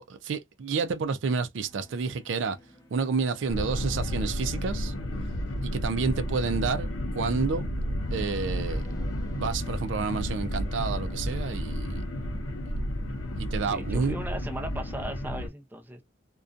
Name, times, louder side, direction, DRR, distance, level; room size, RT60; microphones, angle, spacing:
voice 1, 0.0-2.6 2.9-4.9 5.6-7.6 8.1-8.8 9.4-12.0 13.4-14.2, right 5 dB, 70° right, 0.4 m, -30 dB
sound 1, 1.6-15.2, left 1 dB, 15° left, 0.8 m, -55 dB
sound 2, 3.5-15.5, equal, 90° left, 0.6 m, -32 dB
voice 2, 13.6-16.0, right 1 dB, 10° right, 0.5 m, -37 dB
2.5 x 2.2 x 2.5 m
head